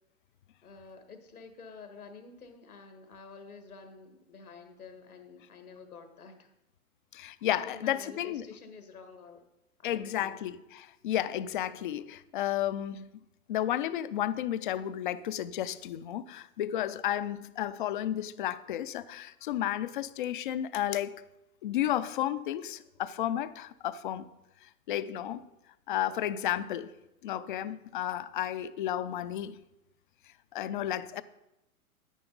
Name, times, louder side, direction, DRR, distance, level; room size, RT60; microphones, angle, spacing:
voice 1, 0.6-6.5 7.5-9.4 9.8-10.4, left 4 dB, 80° left, 7 dB, 1.7 m, -49 dB
voice 2, 7.1-8.5 9.8-13.1 13.5-21.2 21.6-24.3 24.9-25.4 25.9-26.9 27.2-29.6 30.5-31.2, left 11 dB, 40° left, 15 dB, 0.4 m, -32 dB
10.0 x 9.7 x 3.9 m, 0.92 s
figure-of-eight pair, 110°, 43 cm